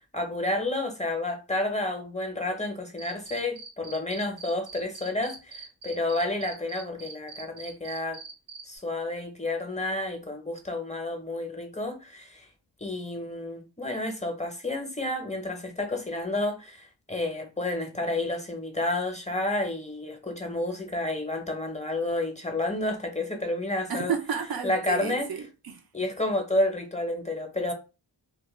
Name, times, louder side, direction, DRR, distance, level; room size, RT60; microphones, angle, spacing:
voice 1, 0.1-8.2 8.7-12.5 12.8-24.1 24.6-25.3 25.9-27.7, left 2 dB, 15° left, 0.7 m, -30 dB
Cricket, 3.0-8.6, right 4 dB, 80° right, 0.8 m, -42 dB
voice 2, 23.9-25.8, right 7 dB, 50° right, 0.5 m, -32 dB
2.2 x 2.1 x 3.0 m
cardioid pair, 50°, 47 cm